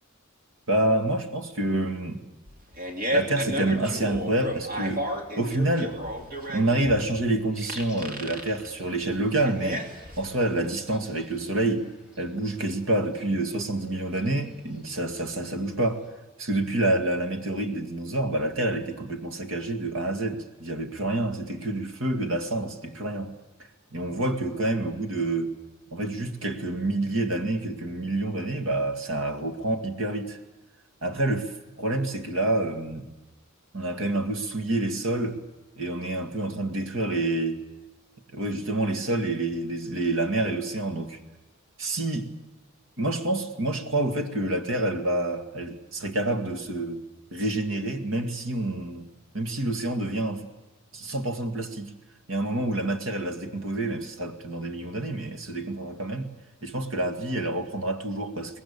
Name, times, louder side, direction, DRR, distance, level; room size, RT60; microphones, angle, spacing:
voice 1, 0.7-2.2 3.1-5.1 5.4-5.9 6.5-9.9 10.2-11.9 12.2-16.0 16.4-23.4 23.9-25.5 25.9-30.4 31.0-33.1 33.7-35.4 35.8-37.6 38.3-41.2 41.8-42.3 43.0-47.0 47.3-49.1 49.3-50.5 50.9-52.0 52.3-56.3 56.6-58.6, right 2 dB, 70° right, 6 dB, 2.2 m, -28 dB
Fart, 2.5-10.4, equal, 45° right, 2.9 m, -32 dB
sound 1, 7.5-16.1, left 1 dB, 5° right, 4.8 m, -53 dB
23.5 x 19.5 x 8.6 m, 1.1 s
head